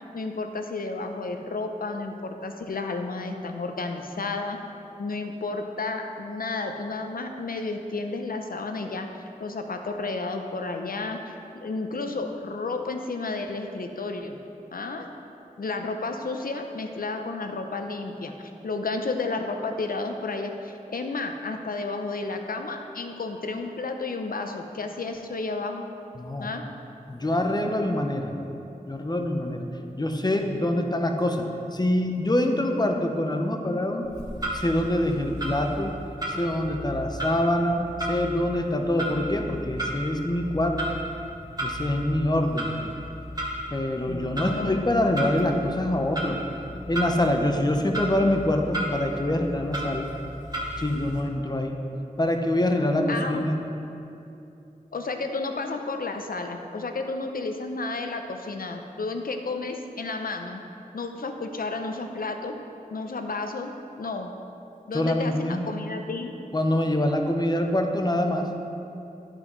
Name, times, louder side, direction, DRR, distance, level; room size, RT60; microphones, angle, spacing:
voice 1, 0.1-4.6 5.0-9.1 9.4-14.4 14.7-15.1 15.6-25.8 26.4-26.7 44.1-44.8 53.1-53.4 54.9-60.6 60.9-62.6 62.9-64.3 64.9-66.3, left 3 dB, 80° left, 5 dB, 0.7 m, -32 dB
voice 2, 26.2-26.5 27.1-28.3 28.9-29.7 29.9-34.1 34.5-36.0 36.3-40.8 41.6-42.7 43.7-46.4 46.9-50.1 50.8-51.8 52.2-53.6 64.9-65.6 66.5-68.5, left 1 dB, 30° left, 4 dB, 0.8 m, -25 dB
Clock, 34.0-51.2, right 1 dB, 25° right, 2.1 m, -34 dB
11.0 x 6.1 x 3.9 m, 2.8 s
wide cardioid pair, 60°, 15 cm